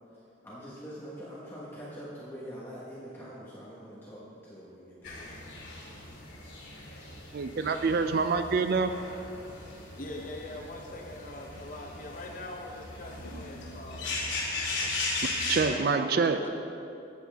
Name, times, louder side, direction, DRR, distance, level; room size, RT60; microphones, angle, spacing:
voice 1, 0.1-5.2, equal, 10° left, -8 dB, 1.3 m, -44 dB
sound 1, 5.0-15.6, left 2 dB, 70° left, 2.2 m, -37 dB
voice 2, 7.3-8.9 15.5-16.4, right 4 dB, 50° right, 8 dB, 0.4 m, -26 dB
voice 3, 10.0-14.2 15.7-16.5, left 2 dB, 40° left, 1 dB, 0.8 m, -42 dB
13.5 x 8.1 x 3.5 m, 2.7 s
head